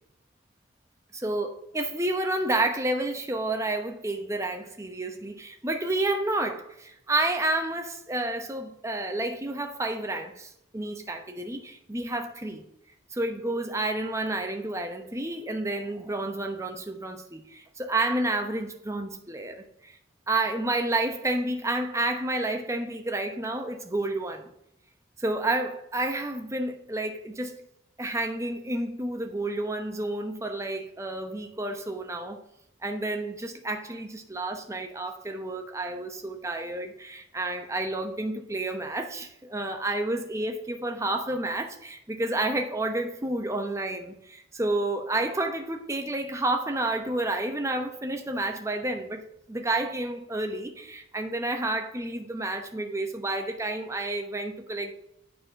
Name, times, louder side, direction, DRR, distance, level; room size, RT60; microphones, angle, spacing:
voice 1, 1.2-12.7 13.1-20.0 20.3-24.5 25.2-27.5 28.0-32.4 32.8-54.9, right 2 dB, 15° right, 0.8 m, -30 dB
9.0 x 4.3 x 5.3 m
head